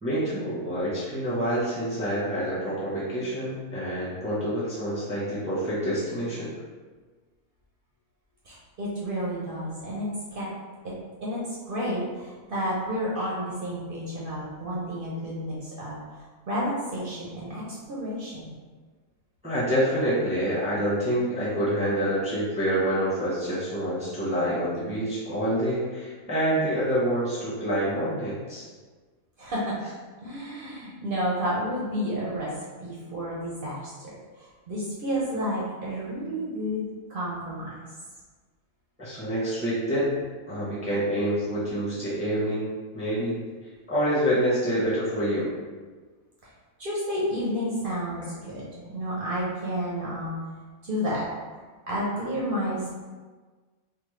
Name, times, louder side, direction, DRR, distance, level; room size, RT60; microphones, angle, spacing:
voice 1, 0.0-6.5 19.4-28.6 39.0-40.1 40.5-42.7 42.9-43.4 43.9-45.5, equal, 5° right, -10 dB, 0.6 m, -27 dB
voice 2, 8.4-10.5 10.8-10.9 11.2-11.4 11.6-16.2 16.5-17.6 17.9-18.5 29.4-29.8 30.2-32.5 32.8-36.8 37.1-37.7 46.8-50.3 50.8-51.3 51.9-52.9, equal, 55° right, -6 dB, 0.6 m, -31 dB
3.3 x 2.1 x 3.1 m, 1.4 s
omnidirectional pair, 1.6 m